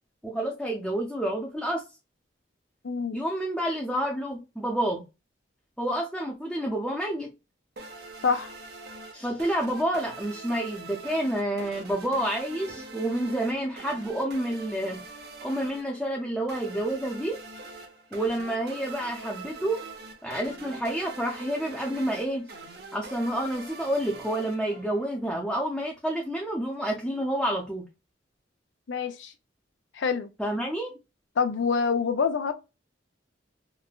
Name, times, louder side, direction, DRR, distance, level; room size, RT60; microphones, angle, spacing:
voice 1, 0.2-1.8 3.1-5.0 5.8-7.3 9.1-15.0 15.4-17.4 18.1-19.8 20.2-22.5 22.9-27.8 30.4-30.9, right 1 dB, 5° left, 0.5 m, -29 dB
voice 2, 2.8-3.2 8.2-8.5 28.9-29.3 29.9-30.3 31.4-32.5, left 5 dB, 80° left, 0.5 m, -26 dB
sound 1, 7.8-25.2, right 3 dB, 55° right, 0.7 m, -44 dB
3.2 x 2.1 x 2.2 m
head